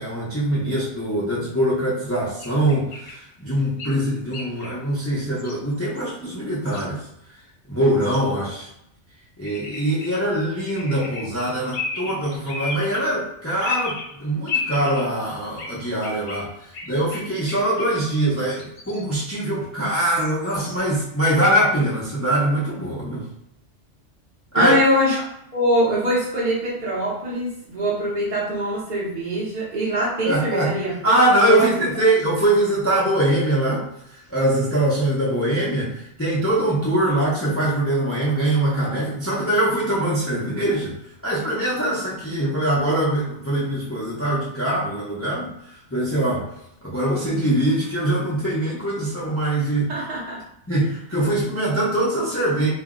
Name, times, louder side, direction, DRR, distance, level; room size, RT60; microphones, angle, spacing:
voice 1, 0.0-7.1 7.7-8.7 9.4-23.2 24.5-24.7 30.2-30.7 31.0-41.0 41.2-46.5 46.8-49.9 50.7-52.7, right 1 dB, 20° left, -6 dB, 0.4 m, -22 dB
sound 1, 2.4-3.1 3.8-3.9 4.3-4.7 5.4-5.6 5.8-6.1 6.7-7.1 8.0-8.2 9.4-10.2 10.7-11.2 11.7-13.0 13.6-14.0 14.5-15.0 15.6-15.7 16.0-18.1 18.6-19.0 20.1-20.8, left 4 dB, 70° left, 0.9 m, -32 dB
voice 2, 24.5-25.2 25.5-30.9 31.3-31.7 49.9-50.4, equal, 45° right, -7 dB, 0.7 m, -23 dB
2.4 x 2.0 x 3.6 m, 0.77 s
omnidirectional pair, 1.3 m